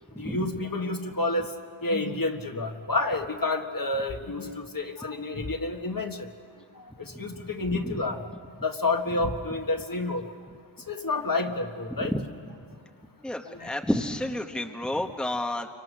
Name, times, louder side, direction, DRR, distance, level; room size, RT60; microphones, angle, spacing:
voice 1, 0.2-1.5 1.8-6.3 7.0-8.2 8.6-10.2 10.9-12.1 13.5-13.7 14.5-14.6, left 2 dB, 45° left, 4 dB, 1.7 m, -29 dB
voice 2, 13.2-15.7, left 1 dB, ahead, 4 dB, 1.2 m, -30 dB
29.0 x 24.5 x 6.3 m, 2.2 s
wide cardioid pair, 85°, 47 cm